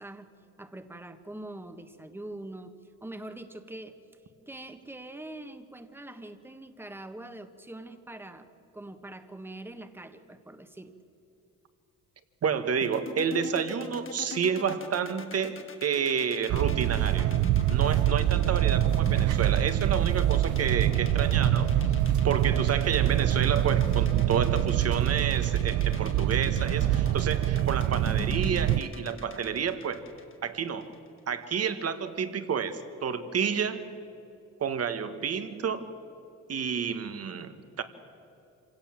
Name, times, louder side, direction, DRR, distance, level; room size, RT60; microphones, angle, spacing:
voice 1, 0.0-4.0 4.5-10.9, right 1 dB, 5° right, 8 dB, 1.5 m, -44 dB
voice 2, 12.4-17.3 17.7-21.7 22.2-30.0 30.4-31.0 31.3-33.9 34.6-35.9 36.5-37.8, right 7 dB, 55° right, 10 dB, 1.7 m, -30 dB
sound 1, 12.8-30.9, left 4 dB, 40° left, 1.9 m, -41 dB
sound 2, 16.5-28.8, right 13 dB, 75° right, 0.6 m, -25 dB
26.0 x 17.5 x 7.5 m, 2.8 s
cardioid pair, 90°, 30 cm